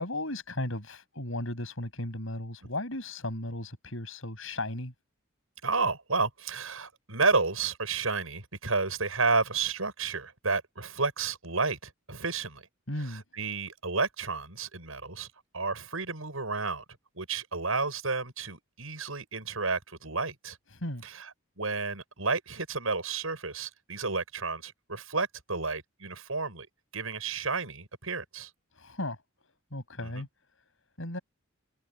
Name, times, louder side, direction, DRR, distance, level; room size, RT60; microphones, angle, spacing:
voice 1, 0.0-4.9 12.9-13.2 20.7-21.0 28.7-29.2 29.7-30.3 31.0-31.2, left 1 dB, 70° left, 7.5 m, -35 dB
voice 2, 5.6-12.6 13.0-15.3 15.5-16.8 17.1-20.6 21.0-21.3 21.6-26.7 26.9-28.5 30.0-30.2, right 4 dB, 80° right, 7.3 m, -31 dB
head